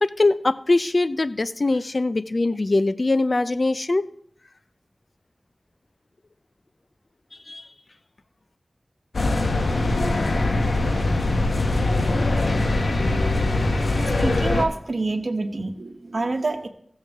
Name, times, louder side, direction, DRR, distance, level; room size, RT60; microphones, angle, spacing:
voice 1, 0.0-4.1 7.5-7.7, left 2 dB, 55° left, 13 dB, 0.5 m, -22 dB
sound 1, 9.1-14.6, left 2 dB, 85° left, 1.0 m, -22 dB
voice 2, 14.2-16.7, right 3 dB, 70° right, 6 dB, 1.0 m, -27 dB
15.5 x 7.4 x 3.5 m, 0.65 s
wide cardioid pair, 50°, 0 cm